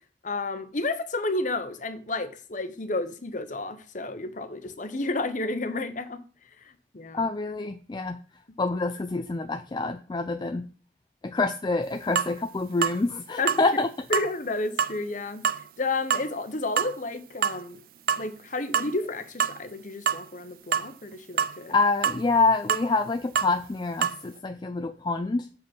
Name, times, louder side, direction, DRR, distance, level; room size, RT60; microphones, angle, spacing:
voice 1, 0.2-6.2 6.6-7.3 13.4-13.5 14.1-15.4 15.8-17.8 18.2-21.7, left 2 dB, 45° left, 10 dB, 0.9 m, -31 dB
voice 2, 7.1-8.2 8.6-10.7 11.2-13.9 21.7-25.5, left 3 dB, 25° left, 8 dB, 0.3 m, -26 dB
sound 1, 12.1-12.3 12.8-13.0 13.5-13.6 14.1-14.3 14.8-15.0 15.4-15.6 16.1-16.3 16.8-16.9 17.4-17.6 18.1-18.2 18.7-19.1 19.4-19.6 20.1-20.2 20.7-20.9 21.4-21.6 22.0-22.2 22.7-22.9 23.3-23.5 24.0-24.2, right 8 dB, 50° right, 0.4 m, -25 dB
7.0 x 5.3 x 5.9 m, 0.39 s
head